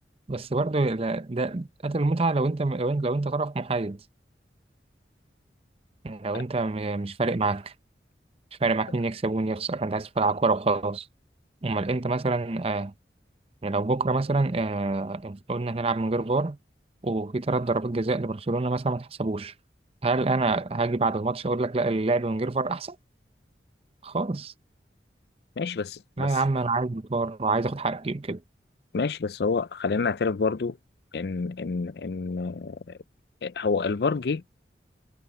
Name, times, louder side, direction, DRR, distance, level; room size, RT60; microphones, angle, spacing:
voice 1, 0.3-4.0 6.0-7.7 8.6-11.1 11.6-12.9 13.6-16.6 17.0-19.5 20.0-23.0 24.0-24.5 26.2-28.4, right 3 dB, 35° right, 0.6 m, -26 dB
voice 2, 25.6-26.3 28.9-30.8 31.1-33.0 33.4-34.5, left 4 dB, 60° left, 0.5 m, -28 dB
head